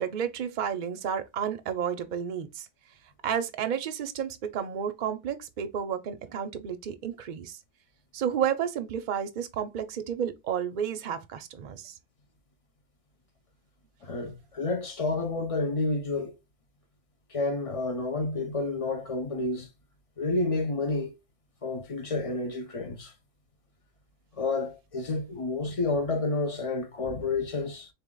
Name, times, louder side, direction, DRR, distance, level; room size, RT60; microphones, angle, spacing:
voice 1, 0.0-2.6 3.2-7.6 8.1-11.9, right 8 dB, 50° right, 0.6 m, -31 dB
voice 2, 14.0-16.3 17.3-19.7 20.2-21.1 21.6-23.1 24.4-27.9, left 3 dB, 35° left, 0.6 m, -30 dB
4.0 x 2.8 x 3.7 m
omnidirectional pair, 1.3 m